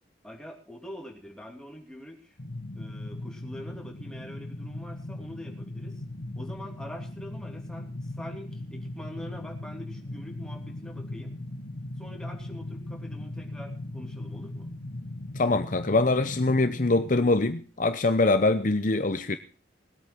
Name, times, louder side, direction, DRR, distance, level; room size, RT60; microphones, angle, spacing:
voice 1, 0.2-2.4 2.7-6.0 6.3-11.3 12.0-14.7, equal, 5° left, 3.1 m, -44 dB
sound 1, 2.4-17.3, left 1 dB, 65° left, 1.9 m, -38 dB
voice 2, 15.4-19.4, left 2 dB, 45° left, 0.8 m, -23 dB
19.0 x 8.6 x 6.1 m
head